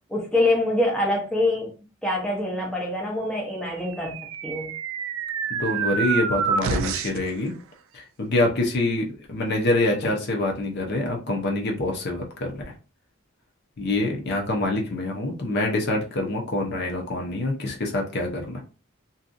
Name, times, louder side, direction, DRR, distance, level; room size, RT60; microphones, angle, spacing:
voice 1, 0.1-1.7 2.0-4.2 4.4-4.7, left 1 dB, 5° left, 0.5 m, -25 dB
sound 1, 3.7-7.3, right 6 dB, 65° right, 0.3 m, -28 dB
voice 2, 5.5-7.5 7.9-12.6 13.8-18.6, left 2 dB, 50° left, 0.7 m, -26 dB
2.7 x 2.4 x 2.5 m
head